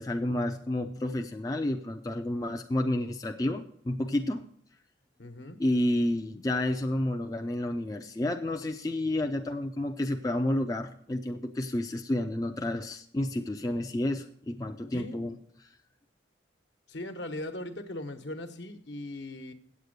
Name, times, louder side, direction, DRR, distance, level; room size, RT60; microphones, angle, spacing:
voice 1, 0.0-4.5 5.6-15.3 15.6-15.7, left 1 dB, 20° left, 4 dB, 0.4 m, -30 dB
voice 2, 5.2-5.6 14.9-15.2 16.9-19.5, left 1 dB, 65° left, 6 dB, 1.1 m, -39 dB
8.4 x 8.1 x 6.5 m, 0.62 s
head